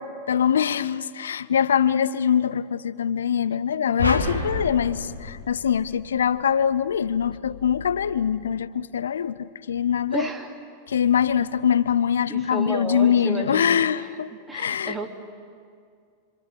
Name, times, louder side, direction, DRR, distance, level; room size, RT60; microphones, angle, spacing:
voice 1, 0.0-10.3 10.9-15.0, left 8 dB, 65° left, 0.7 m, -23 dB
sound 1, 4.0-6.4, left 3 dB, 80° left, 2.5 m, -28 dB
voice 2, 10.1-10.5 12.3-14.1 14.5-15.1, right 2 dB, 10° right, 3.1 m, -32 dB
28.5 x 26.0 x 7.5 m
figure-of-eight pair, 90°, 0 cm